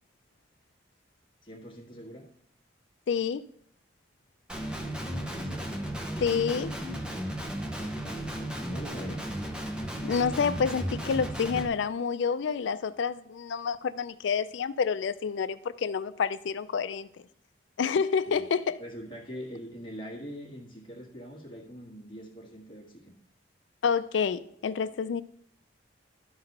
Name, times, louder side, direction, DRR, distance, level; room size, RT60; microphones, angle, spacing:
voice 1, 1.4-2.2 5.2-5.7 7.7-9.3 18.3-18.4 18.8-23.1, equal, 25° left, 1.5 m, -43 dB
voice 2, 3.1-3.4 6.2-6.7 10.0-17.1 17.8-18.8 23.8-25.2, left 6 dB, 70° left, 0.4 m, -28 dB
Guitar, 4.5-11.7, equal, 5° right, 0.7 m, -34 dB
12.0 x 4.0 x 5.4 m
head